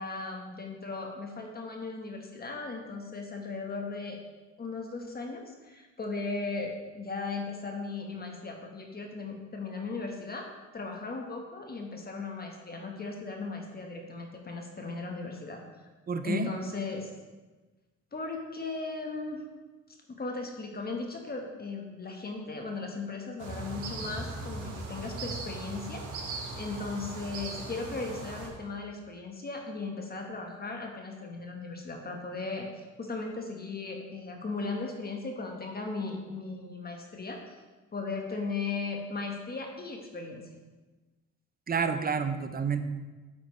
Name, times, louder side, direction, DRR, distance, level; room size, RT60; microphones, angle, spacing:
voice 1, 0.0-4.2 4.6-10.5 10.7-15.6 16.2-17.1 18.1-19.4 20.1-26.0 26.6-37.5 37.9-40.4, left 3 dB, 30° left, 2 dB, 1.4 m, -37 dB
voice 2, 16.1-16.5 41.7-42.8, right 6 dB, 30° right, 9 dB, 0.7 m, -29 dB
sound 1, 23.4-28.5, right 3 dB, 80° right, 1.7 m, -39 dB
9.5 x 7.6 x 3.2 m, 1.2 s
cardioid pair, 90°, 30 cm